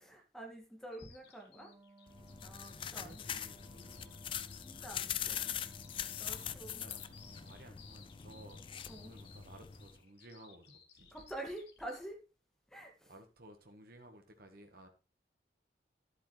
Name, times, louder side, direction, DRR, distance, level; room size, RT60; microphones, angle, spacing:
voice 1, 0.0-1.7 2.4-3.3 4.6-5.6 6.1-6.8 8.9-9.1 11.1-12.2 12.7-13.1, right 1 dB, 5° left, 1.9 m, -47 dB
Bird vocalization bird call bird song, 0.9-12.0, left 8 dB, 60° left, 1.8 m, -60 dB
Wind instrument woodwind instrument, 1.5-8.0, right 2 dB, 20° right, 0.7 m, -62 dB
sound 1, 2.1-10.0, left 9 dB, 30° left, 0.4 m, -42 dB
voice 2, 2.7-4.3 6.2-8.6 8.9-11.2 13.1-14.9, right 1 dB, 55° right, 1.3 m, -57 dB
11.5 x 8.1 x 3.2 m
head